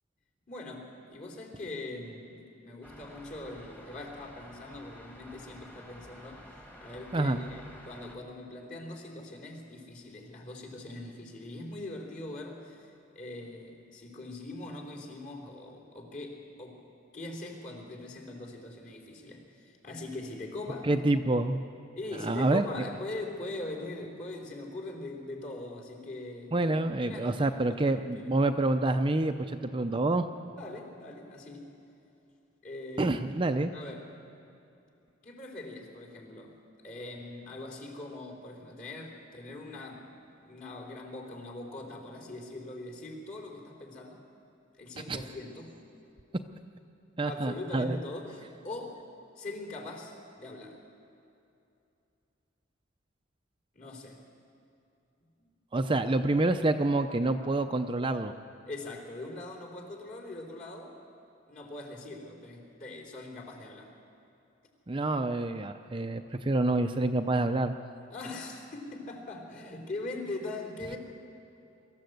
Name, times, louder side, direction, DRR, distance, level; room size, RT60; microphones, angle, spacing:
voice 1, 0.5-6.4 6.8-16.8 17.1-20.9 22.0-28.3 30.6-31.7 32.6-33.3 33.7-34.1 35.2-36.6 36.8-40.1 40.4-44.2 44.8-45.8 47.2-49.0 49.4-50.8 53.7-54.2 55.4-55.5 58.7-61.0 61.5-63.9 68.1-71.0, left 2 dB, 45° left, 0 dB, 3.6 m, -42 dB
sound 1, 2.8-8.2, equal, 10° left, 1.6 m, -51 dB
voice 2, 20.8-21.6 22.2-22.7 26.5-30.3 33.0-33.7 45.0-45.2 47.2-48.0 55.7-58.3 64.9-67.7, right 2 dB, 25° right, 7 dB, 0.5 m, -27 dB
24.0 x 14.0 x 7.9 m, 2.7 s
head